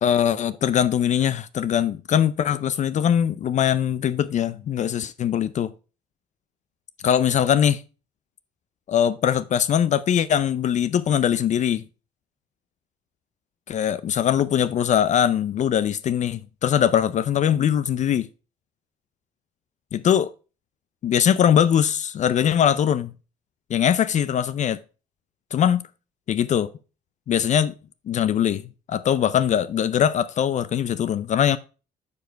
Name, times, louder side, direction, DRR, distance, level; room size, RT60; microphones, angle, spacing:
voice 1, 0.0-5.7 7.0-7.8 8.9-11.8 13.7-18.3 19.9-20.3 21.0-23.1 23.7-24.8 25.5-25.8 26.3-26.7 27.3-27.7 28.1-31.6, left 9 dB, 45° left, 0.5 m, -21 dB
9.6 x 4.9 x 4.5 m
cardioid pair, 110°, 17 cm